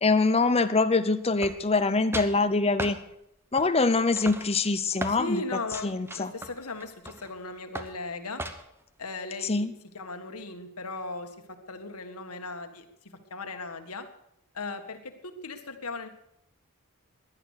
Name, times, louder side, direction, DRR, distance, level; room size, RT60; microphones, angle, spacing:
voice 1, 0.0-3.0 3.5-6.3 9.4-9.7, left 3 dB, 25° left, 11 dB, 0.8 m, -24 dB
sound 1, 1.4-1.9 2.1-2.4 2.8-3.0 3.6-3.9 4.2-5.2 5.7-7.3 7.7-8.0 8.4-8.8, right 1 dB, 10° right, 1.0 m, -37 dB
voice 2, 5.1-8.4 9.0-9.7 9.9-14.1 14.5-16.1, left 3 dB, 80° left, 7 dB, 1.7 m, -37 dB
17.5 x 11.0 x 6.6 m, 0.78 s
head